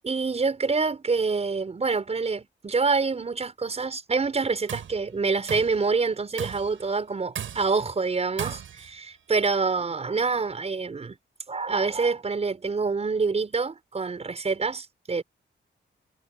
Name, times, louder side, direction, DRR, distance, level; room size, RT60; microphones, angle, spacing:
voice 1, 0.0-11.2 11.5-15.2, right 4 dB, 30° right, 6.5 m, -26 dB
Tools, 4.4-5.0 5.5-5.8 6.4-6.8 7.3-7.9 8.4-8.9, right 8 dB, 80° right, 7.8 m, -36 dB
wide cardioid pair, 165°, 20 cm